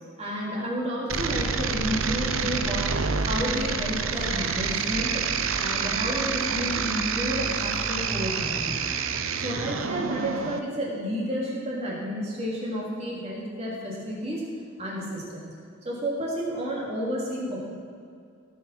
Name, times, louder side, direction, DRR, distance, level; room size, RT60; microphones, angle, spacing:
voice 1, 0.2-2.8 3.1-5.2 5.6-8.8 9.3-14.4 14.8-15.5 15.8-17.7, equal, 30° right, -4 dB, 3.3 m, -31 dB
sound 1, 1.1-10.6, right 5 dB, 80° right, 0.8 m, -28 dB
sound 2, 4.1-9.2, equal, 10° right, 1.0 m, -41 dB
17.5 x 7.8 x 6.1 m, 2.3 s
head